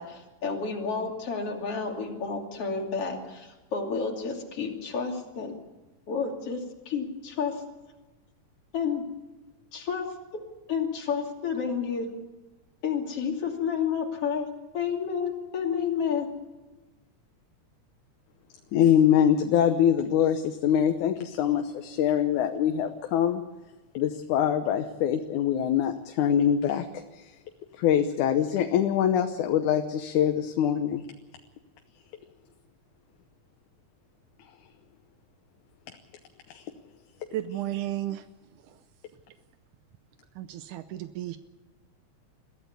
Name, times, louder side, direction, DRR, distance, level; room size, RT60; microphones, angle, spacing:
voice 1, 0.0-5.6 6.1-7.6 8.7-9.0 9.7-10.4 10.7-12.1 12.8-16.3, left 6 dB, 50° left, 1 dB, 3.6 m, -30 dB
voice 2, 18.7-23.4 23.9-27.4 27.7-31.0 36.5-36.7, left 9 dB, 80° left, 6 dB, 2.4 m, -24 dB
voice 3, 37.3-38.3 38.6-38.8 40.4-41.4, right 13 dB, 85° right, 11 dB, 2.3 m, -33 dB
22.0 x 14.5 x 8.3 m, 1.1 s
omnidirectional pair, 3.5 m